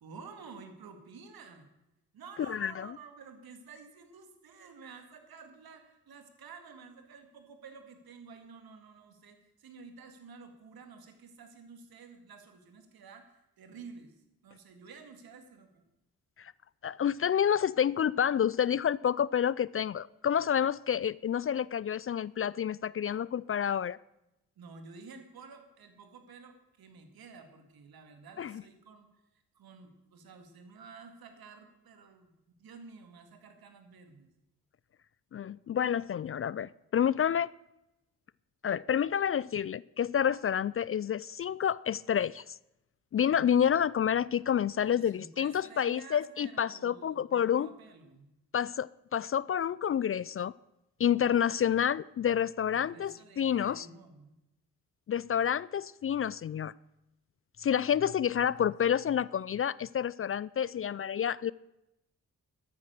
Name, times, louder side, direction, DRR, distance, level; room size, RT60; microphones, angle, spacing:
voice 1, 0.0-1.7 2.1-14.2 14.4-15.8 24.6-29.1 29.5-32.3 32.6-34.3 44.8-48.3 52.7-54.3, right 5 dB, 70° right, 7 dB, 2.4 m, -51 dB
voice 2, 2.5-2.9 16.4-16.5 16.8-24.0 28.4-28.6 35.3-37.5 38.6-42.6 43.1-47.7 48.5-50.5 51.0-53.9 55.1-56.7 57.6-61.5, left 9 dB, 35° left, 22 dB, 0.4 m, -29 dB
13.5 x 9.8 x 6.6 m, 0.90 s
hypercardioid pair, 45°, 37 cm